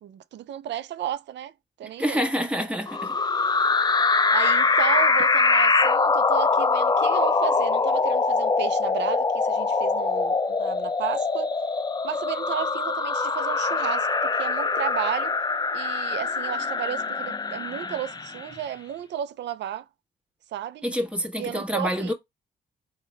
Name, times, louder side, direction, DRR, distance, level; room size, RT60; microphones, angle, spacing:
voice 1, 0.0-1.5 1.8-2.2 4.3-11.5 12.0-15.4 15.7-19.9 20.5-20.8 21.4-22.1, right 11 dB, 65° right, 0.4 m, -33 dB
voice 2, 2.0-3.2 20.8-22.1, equal, 5° right, 1.2 m, -27 dB
sound 1, 2.9-18.5, left 4 dB, 20° left, 0.4 m, -23 dB
3.8 x 2.2 x 4.2 m
cardioid pair, 65°, 19 cm